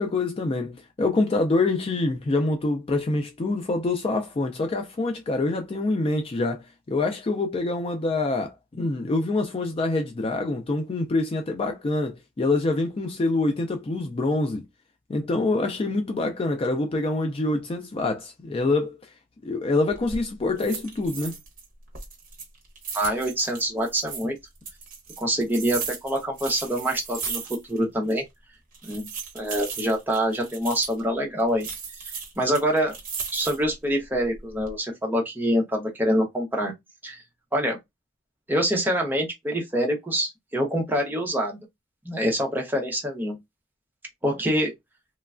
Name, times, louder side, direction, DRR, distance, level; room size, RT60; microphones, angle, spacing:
voice 1, 0.0-14.6 15.1-19.0 19.4-21.4, left 2 dB, 30° left, 0.3 m, -25 dB
sound 1, 19.9-20.2 20.6-21.6 21.9-24.2 24.6-27.8 28.1-28.2 28.7-31.0 31.6-33.7 34.2-34.7, right 5 dB, 45° right, 0.9 m, -36 dB
voice 2, 22.9-24.4 25.2-28.2 28.8-29.1 29.3-31.7 32.4-33.0 33.3-36.7 37.0-37.2 37.5-37.8 38.5-41.6 42.0-43.4 44.2-44.7, equal, 10° right, 0.6 m, -25 dB
3.1 x 2.2 x 2.4 m
head